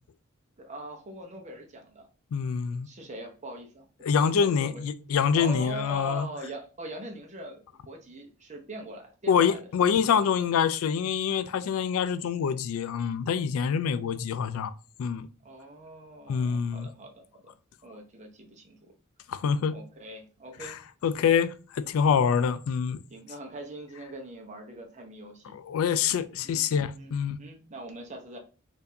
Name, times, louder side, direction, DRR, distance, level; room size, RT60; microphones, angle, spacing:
voice 1, 0.6-2.1 2.8-3.9 4.4-4.8 5.3-9.6 15.4-17.5 17.8-18.8 19.7-20.7 23.1-25.5 26.4-26.7 27.0-28.4, right 1 dB, 35° right, 0.7 m, -42 dB
voice 2, 2.3-2.9 4.0-6.3 9.3-14.7 15.0-15.3 16.3-16.9 19.3-19.7 20.6-20.7 21.0-23.0 25.5-27.4, left 7 dB, 85° left, 0.3 m, -26 dB
4.4 x 2.6 x 2.6 m
head